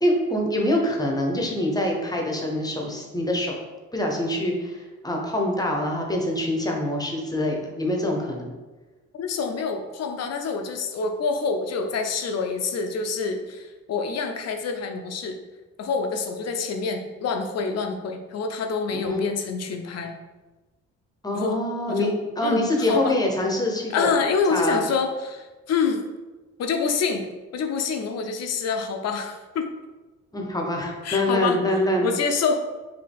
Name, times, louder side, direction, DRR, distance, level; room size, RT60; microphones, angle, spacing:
voice 1, 0.0-3.6 3.9-8.5 18.9-19.2 21.2-24.1 24.5-24.8 30.3-32.1, left 1 dB, 15° left, 0 dB, 0.9 m, -25 dB
voice 2, 9.1-15.4 15.8-20.1 21.3-22.1 22.4-23.2 23.9-26.0 26.6-27.2 27.5-29.7 31.0-31.6 32.0-32.6, left 5 dB, 55° left, 5 dB, 0.6 m, -26 dB
4.8 x 2.8 x 3.5 m, 1.2 s
cardioid pair, 90°, 30 cm